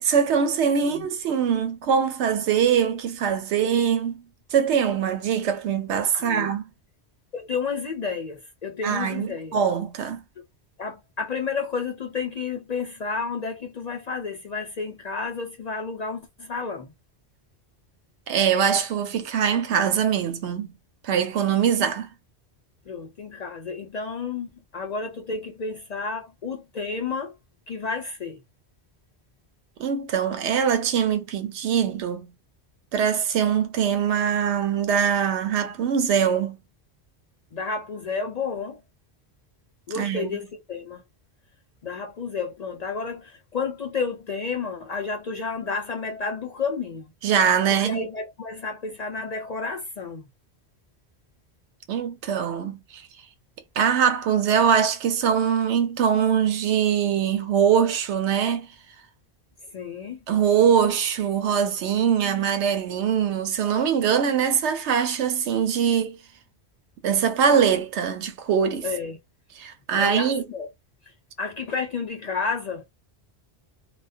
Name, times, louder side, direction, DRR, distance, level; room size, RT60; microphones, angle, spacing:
voice 1, 0.0-4.1 4.5-6.6 8.8-10.2 18.3-20.7 21.0-22.1 29.8-32.3 32.9-36.6 39.9-40.4 47.2-48.0 51.9-53.1 53.8-58.7 60.3-66.2 67.0-68.9 69.6-70.4, right 7 dB, 85° right, 0.9 m, -22 dB
voice 2, 6.1-6.5 7.3-9.6 10.8-16.9 22.9-27.3 27.7-28.4 37.5-38.8 39.9-41.0 41.8-47.1 47.7-50.3 59.7-60.2 68.8-69.2 69.9-70.7 71.4-72.8, left 5 dB, 55° left, 0.5 m, -31 dB
2.3 x 2.1 x 2.4 m
omnidirectional pair, 1.1 m